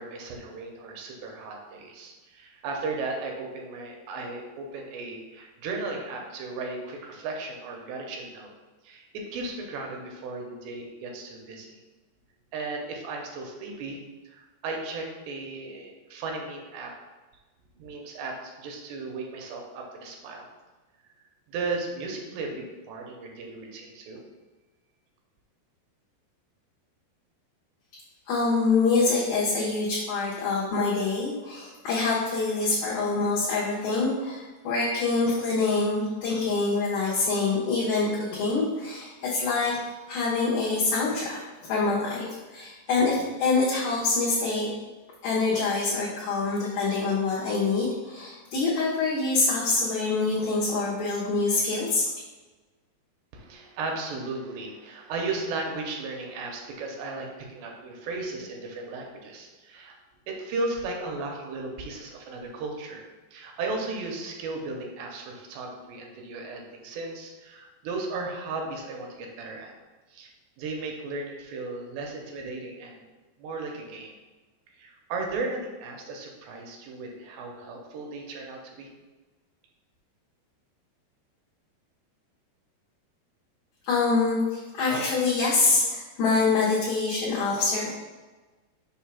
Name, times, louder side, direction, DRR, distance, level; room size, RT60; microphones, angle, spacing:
voice 1, 0.0-8.5 8.8-11.8 12.5-16.9 17.8-20.5 21.5-24.2 53.3-59.9 60.3-69.7 70.1-70.3 70.6-73.1 73.4-74.1 74.8-78.9, right 3 dB, 80° right, 1 dB, 2.9 m, -35 dB
voice 2, 28.3-39.8 40.1-41.4 41.7-44.7 45.2-52.1 83.9-87.9, left 3 dB, 70° left, -8 dB, 2.6 m, -25 dB
6.8 x 2.7 x 5.6 m, 1.2 s
omnidirectional pair, 5.0 m